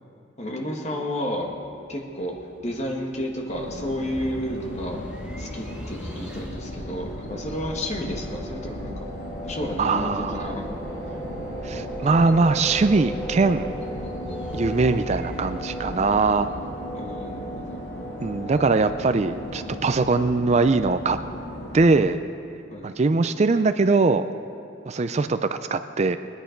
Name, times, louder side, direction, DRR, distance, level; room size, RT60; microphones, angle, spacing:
voice 1, 0.4-1.5 1.9-2.3 2.6-5.0 5.4-9.1 9.4-10.6 16.9-17.8 22.7-22.9, equal, 40° left, 1 dB, 1.8 m, -31 dB
sound 1, 1.3-17.3, equal, 5° right, 1.1 m, -42 dB
sound 2, 3.5-21.9, left 1 dB, 75° left, 2.4 m, -37 dB
sound 3, 7.0-21.5, right 1 dB, 10° left, 1.7 m, -38 dB
voice 2, 9.8-10.5 11.6-13.7 14.5-16.5 18.2-21.2 21.7-22.2 22.8-24.3 24.9-26.2, right 3 dB, 35° right, 10 dB, 0.4 m, -21 dB
21.0 x 10.0 x 5.2 m, 2.6 s
head